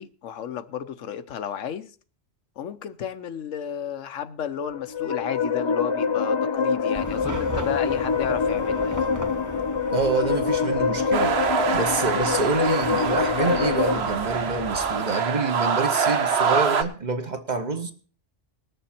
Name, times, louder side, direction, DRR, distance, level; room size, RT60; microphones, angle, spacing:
voice 1, 0.0-1.9 2.6-9.0, left 8 dB, 90° left, 1.1 m, -32 dB
sound 1, 4.6-14.0, left 5 dB, 45° left, 0.3 m, -25 dB
Chatter / Car passing by / Traffic noise roadway noise, 6.9-15.0, right 2 dB, 20° right, 0.7 m, -39 dB
voice 2, 9.9-11.4 11.7-17.9, right 3 dB, 40° right, 1.1 m, -27 dB
sound 2, 11.1-16.8, right 6 dB, 60° right, 1.1 m, -25 dB
20.0 x 6.8 x 4.3 m
omnidirectional pair, 1.3 m